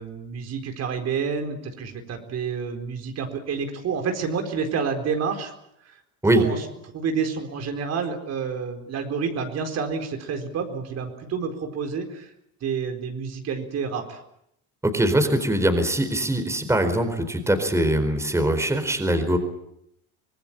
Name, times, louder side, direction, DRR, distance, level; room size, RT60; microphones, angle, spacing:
voice 1, 0.0-5.5 5.8-6.0 6.3-6.6 6.9-12.3 12.6-14.2, right 6 dB, 45° right, 5 dB, 4.4 m, -29 dB
voice 2, 14.8-19.4, right 1 dB, 10° right, 7 dB, 4.3 m, -22 dB
25.5 x 18.5 x 8.8 m, 0.77 s
supercardioid pair, 100°, 34 cm